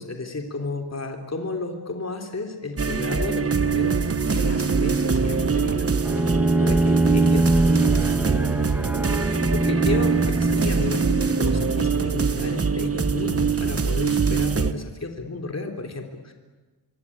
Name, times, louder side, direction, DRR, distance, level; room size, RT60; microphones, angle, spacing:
voice 1, 0.0-5.9 6.2-8.3 9.1-16.3, left 3 dB, 40° left, 3 dB, 3.5 m, -32 dB
sound 1, 2.8-14.7, right 5 dB, 35° right, 1.2 m, -23 dB
Bowed string instrument, 6.0-11.9, right 1 dB, 5° right, 1.7 m, -23 dB
26.5 x 23.5 x 8.7 m, 1.2 s
wide cardioid pair, 85°, 38 cm